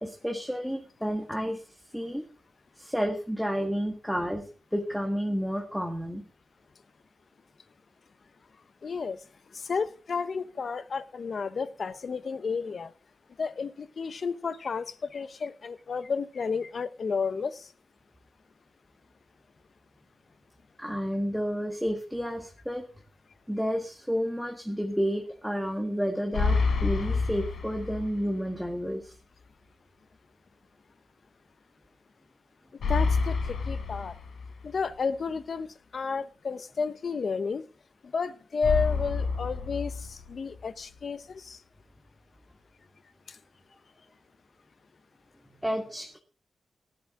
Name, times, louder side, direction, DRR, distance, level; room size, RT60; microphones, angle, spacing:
voice 1, 0.0-2.2 2.7-4.4 4.7-6.2 20.8-22.8 23.5-29.1 45.5-46.2, equal, ahead, 3 dB, 1.6 m, -31 dB
voice 2, 8.8-9.2 9.5-12.9 13.4-17.7 32.9-34.1 34.6-35.7 35.9-37.7 38.1-41.6 43.3-43.4, left 5 dB, 55° left, 15 dB, 0.8 m, -32 dB
sound 1, 26.3-28.4 28.7-28.8 32.8-34.8 38.6-40.6, left 4 dB, 85° left, 2.7 m, -28 dB
17.5 x 10.5 x 3.7 m, 0.35 s
wide cardioid pair, 105°, 0 cm